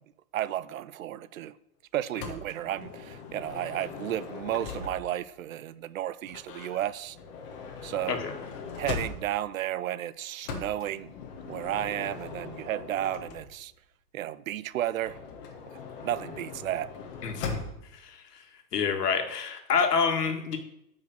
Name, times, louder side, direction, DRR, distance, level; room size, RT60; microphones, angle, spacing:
voice 1, 0.3-1.5 1.9-7.2 7.8-8.2 8.8-11.1 11.5-13.7 14.1-15.2 16.0-16.9, right 12 dB, 60° right, 0.5 m, -33 dB
Motor vehicle (road) / Sliding door, 2.2-5.3 6.2-9.5 10.4-13.8 15.0-17.9, left 5 dB, 35° left, 1.5 m, -40 dB
voice 2, 17.2-17.6 17.9-18.2 18.7-20.6, left 6 dB, 85° left, 1.9 m, -27 dB
9.3 x 5.6 x 6.6 m
hypercardioid pair, 160°, 46 cm